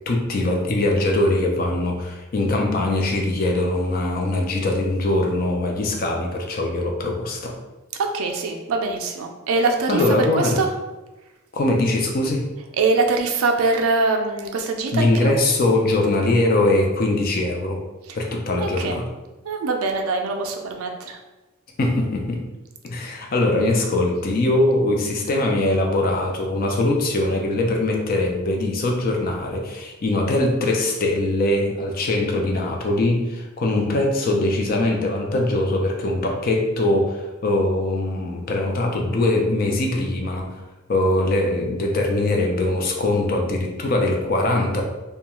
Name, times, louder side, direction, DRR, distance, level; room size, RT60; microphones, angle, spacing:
voice 1, 0.1-7.5 9.9-10.6 11.5-12.5 14.9-17.8 18.1-19.0 21.8-22.5 22.8-40.6 40.9-44.8, left 2 dB, 40° left, 1 dB, 0.4 m, -22 dB
voice 2, 8.0-10.7 12.8-15.3 18.1-18.2 18.6-19.0 19.4-21.2, right 3 dB, 80° right, 3 dB, 0.4 m, -23 dB
2.3 x 2.2 x 2.9 m, 1.1 s
head